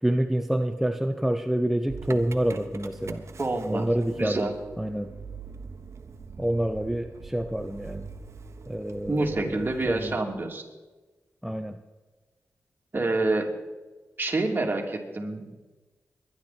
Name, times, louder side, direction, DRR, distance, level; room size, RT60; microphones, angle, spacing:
voice 1, 0.0-3.2 3.7-4.5 4.8-5.1 6.4-8.1 8.7-10.2 11.4-11.8, right 1 dB, 5° right, 8 dB, 0.8 m, -27 dB
Motor vehicle (road) / Engine starting, 1.9-10.2, right 4 dB, 60° right, 1.2 m, -43 dB
voice 2, 3.4-3.9 4.2-4.5 9.1-10.6 12.9-13.5 14.2-15.5, right 2 dB, 35° right, 1 dB, 3.1 m, -27 dB
22.5 x 11.0 x 4.4 m, 1.2 s
cardioid pair, 50°, 5 cm